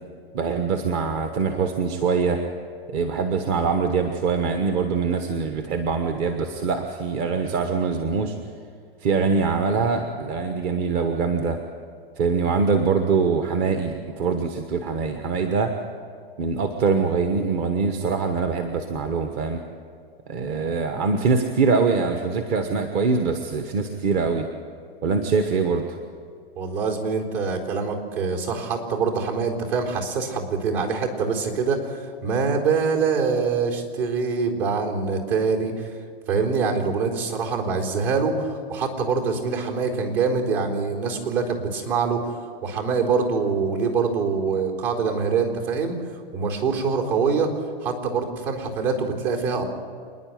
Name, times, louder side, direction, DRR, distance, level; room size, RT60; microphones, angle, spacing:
voice 1, 0.3-2.4 2.9-8.3 9.0-11.6 12.2-15.7 16.4-19.6 20.3-24.5 25.0-26.0, right 5 dB, 40° right, 6 dB, 1.3 m, -23 dB
voice 2, 26.6-31.8 32.2-35.9 36.3-42.3 42.6-46.0 46.3-47.5 47.8-49.6, right 5 dB, 60° right, 1 dB, 4.2 m, -24 dB
27.5 x 10.5 x 9.3 m, 2.2 s
hypercardioid pair, 140°, 31 cm